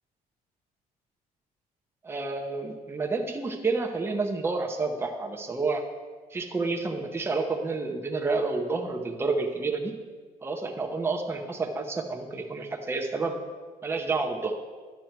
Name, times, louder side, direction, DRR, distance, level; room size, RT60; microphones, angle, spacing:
voice 1, 2.0-5.8 6.3-9.9 10.4-13.4 13.8-14.5, right 3 dB, 15° right, 2 dB, 0.8 m, -29 dB
10.5 x 6.2 x 4.5 m, 1.5 s
cardioid pair, 115°, 15 cm